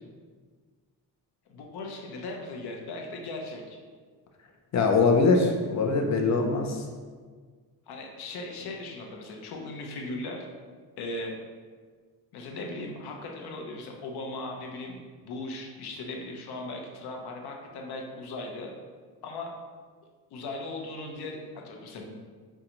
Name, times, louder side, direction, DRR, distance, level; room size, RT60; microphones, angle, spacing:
voice 1, 1.5-3.8 7.9-10.5 11.0-11.3 12.3-18.7 19.2-19.5 20.3-22.1, left 2 dB, 90° left, 1 dB, 0.7 m, -38 dB
voice 2, 4.7-6.8, left 4 dB, 50° left, 2 dB, 0.5 m, -22 dB
5.1 x 2.3 x 2.9 m, 1.5 s
cardioid pair, 115°, 37 cm